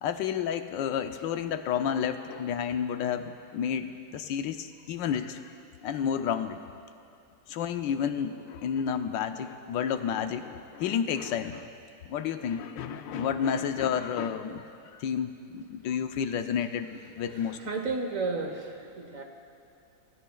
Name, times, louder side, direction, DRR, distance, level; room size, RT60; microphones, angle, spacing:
voice 1, 0.0-5.4 5.8-6.6 7.5-11.7 12.1-14.6 14.9-17.6, left 8 dB, 80° left, 8 dB, 1.4 m, -31 dB
voice 2, 17.3-19.2, right 3 dB, 50° right, 3 dB, 1.5 m, -33 dB
27.5 x 16.0 x 2.3 m, 2.7 s
omnidirectional pair, 2.0 m